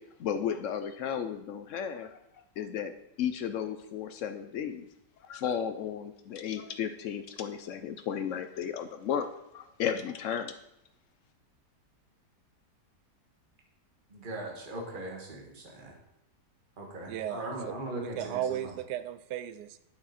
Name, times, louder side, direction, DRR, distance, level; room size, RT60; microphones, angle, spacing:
voice 1, 0.2-2.1 2.6-2.9 3.2-4.9 5.3-9.3 9.5-10.5, left 8 dB, 75° left, 9 dB, 0.7 m, -34 dB
voice 2, 14.1-15.9 16.8-18.2 18.5-18.7, right 1 dB, 30° right, 0 dB, 1.6 m, -39 dB
voice 3, 17.1-19.8, right 11 dB, 80° right, 12 dB, 1.2 m, -36 dB
8.6 x 6.6 x 4.2 m, 0.82 s
omnidirectional pair, 1.8 m